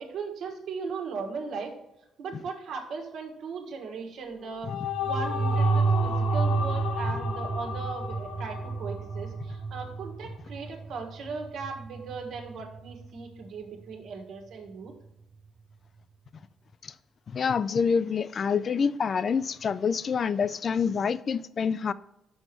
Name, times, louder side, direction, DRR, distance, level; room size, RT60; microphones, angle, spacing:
voice 1, 0.0-1.7 2.2-14.9, right 4 dB, 75° right, 1.5 m, -38 dB
sound 1, 4.3-9.8, left 7 dB, 80° left, 0.7 m, -35 dB
sound 2, 4.8-13.2, right 4 dB, 30° right, 0.3 m, -30 dB
voice 2, 17.3-21.9, left 6 dB, 50° left, 0.3 m, -27 dB
6.3 x 5.3 x 4.6 m
cardioid pair, 90°, 0 cm